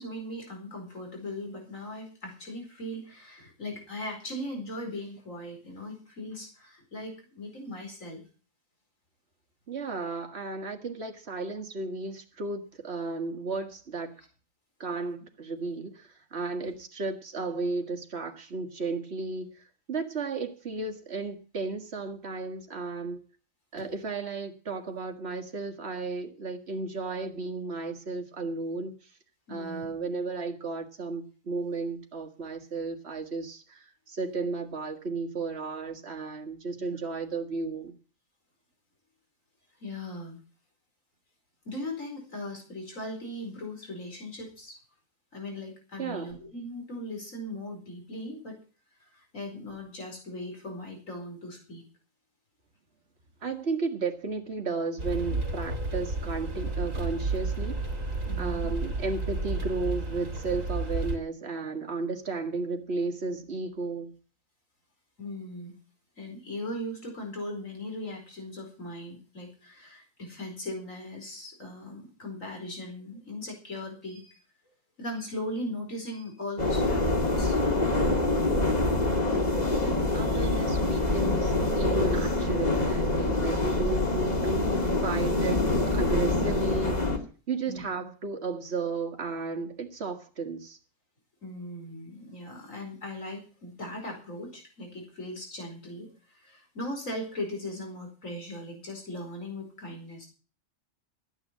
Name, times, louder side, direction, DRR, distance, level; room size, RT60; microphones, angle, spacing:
voice 1, 0.0-8.2 16.6-16.7 23.8-23.9 29.5-29.9 39.8-40.4 41.6-44.8 45.3-48.6 49.0-51.8 58.3-58.7 65.2-65.7 66.2-74.4 75.0-77.5 87.7-87.8 91.4-100.3, left 1 dB, 80° left, 5.1 m, -39 dB
voice 2, 9.7-14.1 14.8-23.2 23.7-28.9 29.5-37.9 46.0-46.3 53.4-57.8 58.4-64.1 79.3-87.0 87.5-90.8, right 3 dB, 55° right, 2.0 m, -34 dB
sound 1, 55.0-61.2, right 3 dB, 80° right, 3.1 m, -31 dB
sound 2, 76.6-87.2, left 2 dB, 30° left, 2.3 m, -25 dB
13.5 x 9.2 x 7.4 m
omnidirectional pair, 1.4 m